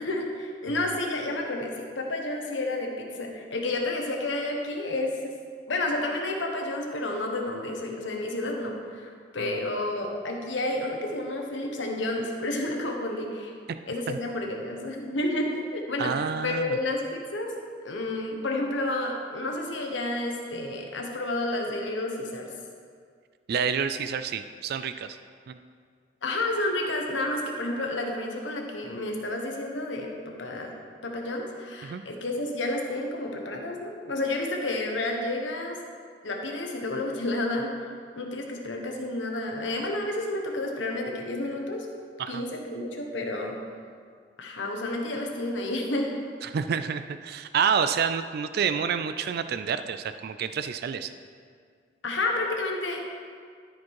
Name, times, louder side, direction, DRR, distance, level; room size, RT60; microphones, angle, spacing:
voice 1, 0.0-5.4 5.7-13.5 13.9-16.1 16.4-17.5 17.8-22.5 26.2-30.7 31.0-35.8 36.2-37.7 38.2-41.9 42.3-43.6 44.4-46.2 52.0-53.0, left 2 dB, 90° left, 1 dB, 1.3 m, -30 dB
voice 2, 16.0-16.8 23.5-25.1 25.5-25.6 31.8-32.0 42.2-42.4 46.4-51.1, right 7 dB, 55° right, 11 dB, 0.4 m, -28 dB
13.0 x 5.1 x 4.7 m, 2.1 s
head